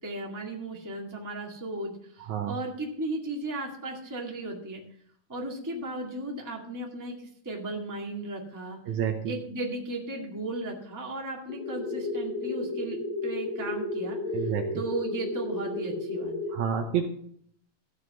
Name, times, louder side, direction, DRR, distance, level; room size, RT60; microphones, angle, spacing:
voice 1, 0.0-4.8 5.3-8.8 9.2-13.0 13.2-16.3, right 2 dB, 10° right, -1 dB, 1.2 m, -35 dB
voice 2, 8.9-9.3 14.3-14.7 16.5-17.1, right 8 dB, 70° right, 5 dB, 1.9 m, -28 dB
sound 1, 11.5-16.5, left 2 dB, 45° left, 3.9 m, -33 dB
14.0 x 4.8 x 6.8 m, 0.64 s
omnidirectional pair, 3.9 m